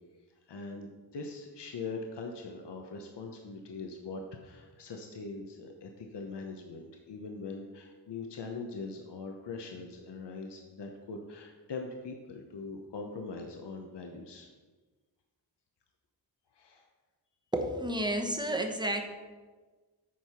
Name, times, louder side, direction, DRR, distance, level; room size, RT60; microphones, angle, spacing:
voice 1, 0.5-14.5 16.5-16.9, left 3 dB, 80° left, 3 dB, 0.9 m, -42 dB
voice 2, 17.5-19.1, right 1 dB, 10° right, 4 dB, 0.9 m, -31 dB
8.4 x 4.7 x 5.7 m, 1.3 s
wide cardioid pair, 105°, 41 cm